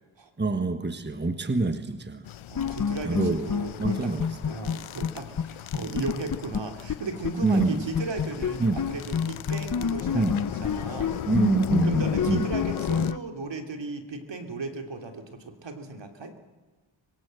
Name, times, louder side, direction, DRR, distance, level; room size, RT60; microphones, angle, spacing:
voice 1, 0.4-2.3 3.0-3.5 3.8-4.3 5.8-5.9 7.4-7.8 8.6-8.8 10.1-10.4 11.2-12.5, right 3 dB, 20° right, 9 dB, 1.5 m, -26 dB
sound 1, 2.2-13.1, left 11 dB, 85° left, 0.7 m, -37 dB
sound 2, 2.5-5.1 5.4-5.5 5.7-7.3 7.6-7.7 7.9-13.2, left 7 dB, 40° left, 0.8 m, -29 dB
voice 2, 2.5-4.1 4.4-11.1 11.8-16.3, right 3 dB, 65° right, 5 dB, 3.2 m, -36 dB
26.5 x 23.0 x 7.7 m, 1.3 s
wide cardioid pair, 75°, 48 cm